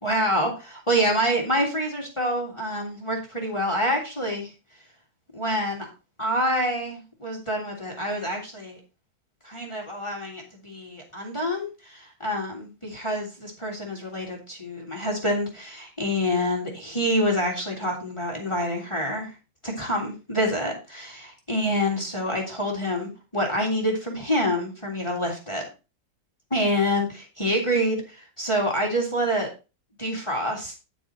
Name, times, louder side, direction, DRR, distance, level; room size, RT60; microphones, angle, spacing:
voice 1, 0.0-4.5 5.3-5.9 6.2-8.8 9.4-19.3 19.6-25.6 26.5-29.5 30.0-30.8, equal, 15° left, 0 dB, 1.8 m, -27 dB
9.7 x 5.3 x 4.4 m, 0.31 s
omnidirectional pair, 2.0 m